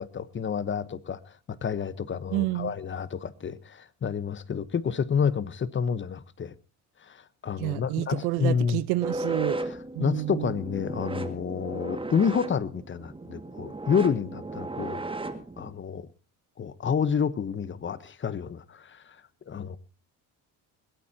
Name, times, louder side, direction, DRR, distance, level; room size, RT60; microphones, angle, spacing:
voice 1, 0.0-6.5 7.0-8.8 9.7-15.0 15.6-16.1 16.6-19.2 19.5-19.8, left 7 dB, 30° left, 1.0 m, -29 dB
voice 2, 2.3-2.7 7.6-9.6 10.0-10.5, right 17 dB, 90° right, 1.0 m, -29 dB
sound 1, 9.0-15.7, right 2 dB, 15° right, 1.9 m, -35 dB
21.5 x 16.5 x 2.8 m
cardioid pair, 105°, 38 cm